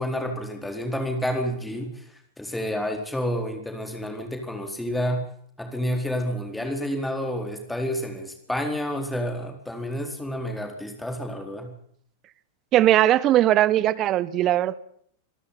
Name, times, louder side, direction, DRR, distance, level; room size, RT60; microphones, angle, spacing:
voice 1, 0.0-2.0 2.4-5.3 5.6-11.7, equal, 5° left, 4.4 m, -29 dB
voice 2, 12.7-14.7, right 13 dB, 35° right, 1.0 m, -19 dB
27.0 x 12.5 x 9.5 m
figure-of-eight pair, 90°, 0 cm